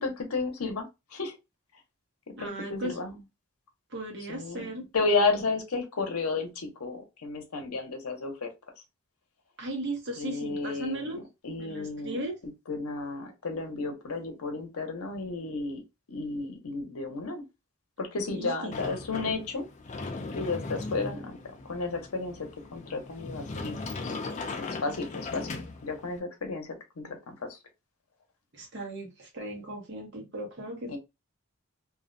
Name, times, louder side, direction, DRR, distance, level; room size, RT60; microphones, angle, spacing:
voice 1, 0.0-1.3 2.4-3.2 4.3-4.7 4.9-8.5 10.2-12.2 12.7-15.8 16.1-17.4 18.0-19.7 20.4-21.4 21.6-23.8 24.6-27.6 30.9-31.0, left 3 dB, 90° left, 0.7 m, -32 dB
voice 2, 2.4-3.0 3.9-4.9 9.6-11.2 11.6-12.4 18.3-18.7 28.5-31.0, right 1 dB, 50° right, 0.8 m, -37 dB
Sliding door, 18.7-26.2, left 3 dB, 35° left, 0.4 m, -38 dB
2.4 x 2.1 x 2.5 m
head